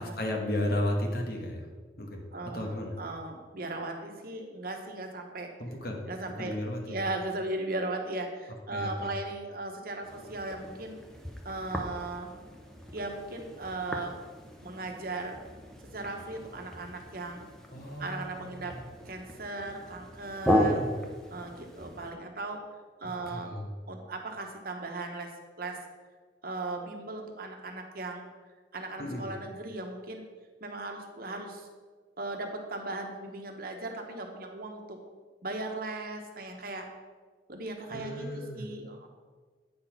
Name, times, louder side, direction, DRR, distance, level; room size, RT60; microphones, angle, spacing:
voice 1, 0.0-1.7 2.0-2.2 2.5-3.0 5.6-6.0 6.4-7.0 8.7-9.1 17.7-18.9 20.6-20.9 23.3-23.7 29.0-29.3 37.9-38.7, left 1 dB, 55° left, 2 dB, 1.2 m, -34 dB
voice 2, 2.3-5.5 6.1-6.6 6.9-11.0 11.4-12.3 12.9-14.2 14.6-15.4 15.9-17.5 18.0-18.8 19.1-20.8 21.3-22.6 23.0-23.5 23.9-25.3 25.6-25.8 26.4-28.3 28.7-30.2 30.6-31.7 32.2-35.0 35.4-36.9 37.5-39.1, right 2 dB, 55° right, 3 dB, 1.0 m, -37 dB
sound 1, 10.0-22.1, equal, 5° left, 0.7 m, -35 dB
8.8 x 4.1 x 5.7 m, 1.4 s
head